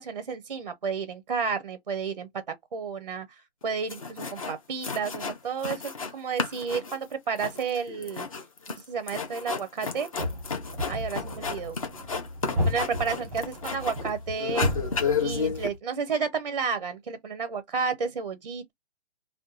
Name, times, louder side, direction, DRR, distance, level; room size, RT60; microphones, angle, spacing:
voice 1, 0.0-2.3 2.7-3.3 3.6-8.3 8.7-10.1 10.9-11.8 12.6-14.8 15.2-18.7, right 5 dB, 40° right, 0.4 m, -31 dB
sound 1, 3.6-3.7 3.9-4.6 4.8-6.1 6.4-14.1 14.4-15.7, left 5 dB, 30° left, 0.5 m, -32 dB
sound 2, 10.2-15.8, left 1 dB, 5° right, 0.7 m, -33 dB
2.6 x 2.2 x 3.6 m
hypercardioid pair, 165°, 33 cm